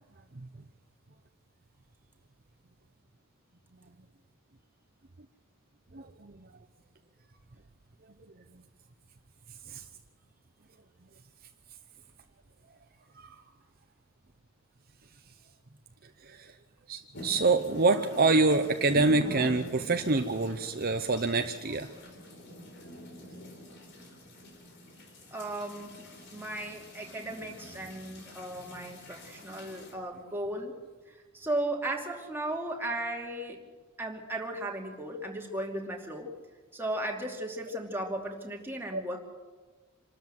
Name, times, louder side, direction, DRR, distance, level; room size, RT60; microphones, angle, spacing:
voice 1, 5.9-6.6 9.7-9.9 13.1-13.4 16.0-16.6 16.9-21.9 38.9-39.0, right 3 dB, 45° right, 6 dB, 0.8 m, -27 dB
sound 1, 17.1-29.9, left 1 dB, 55° left, 4.0 m, -45 dB
voice 2, 25.3-30.7 31.1-33.6 34.0-36.3 36.7-39.2, right 1 dB, 10° right, 0 dB, 2.7 m, -36 dB
27.0 x 13.0 x 7.8 m, 1.3 s
head